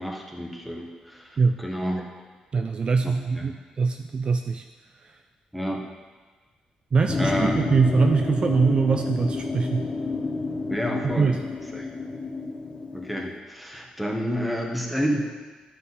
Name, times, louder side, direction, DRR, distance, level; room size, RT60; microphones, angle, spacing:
voice 1, 0.0-2.0 3.0-3.6 5.5-5.9 7.2-7.8 10.7-11.4 11.7-11.9 12.9-15.3, equal, ahead, 0 dB, 1.4 m, -30 dB
voice 2, 2.5-3.5 3.8-4.6 6.9-9.9 11.0-11.4, right 5 dB, 40° right, 6 dB, 0.4 m, -22 dB
sound 1, 7.1-13.4, left 3 dB, 40° left, 0.8 m, -30 dB
11.5 x 5.2 x 4.2 m, 1.4 s
cardioid pair, 90°, 2 cm